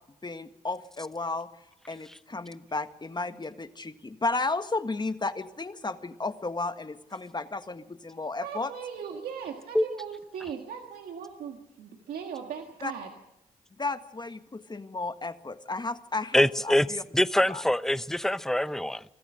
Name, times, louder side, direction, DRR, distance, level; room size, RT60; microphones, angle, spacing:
voice 1, 0.2-1.5 1.9-8.7 12.8-12.9 13.8-17.0 17.5-17.6, left 3 dB, 30° left, 1.7 m, -33 dB
voice 2, 8.4-13.1, right 7 dB, 90° right, 1.8 m, -38 dB
voice 3, 16.3-16.9 17.1-19.0, left 1 dB, 5° left, 0.8 m, -24 dB
24.5 x 14.0 x 7.9 m
supercardioid pair, 50°, 15 cm